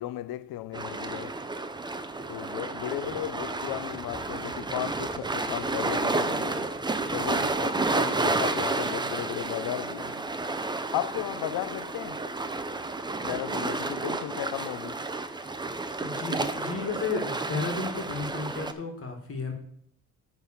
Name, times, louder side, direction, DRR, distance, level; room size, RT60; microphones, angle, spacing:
voice 1, 0.0-1.5 2.3-6.7 7.1-10.2 10.9-12.3 13.2-15.1, left 13 dB, 80° left, 0.6 m, -35 dB
sound 1, 0.7-18.7, right 3 dB, 10° right, 0.6 m, -31 dB
voice 2, 16.0-19.5, left 4 dB, 40° left, 2.2 m, -33 dB
9.4 x 4.0 x 7.3 m
cardioid pair, 105°, 36 cm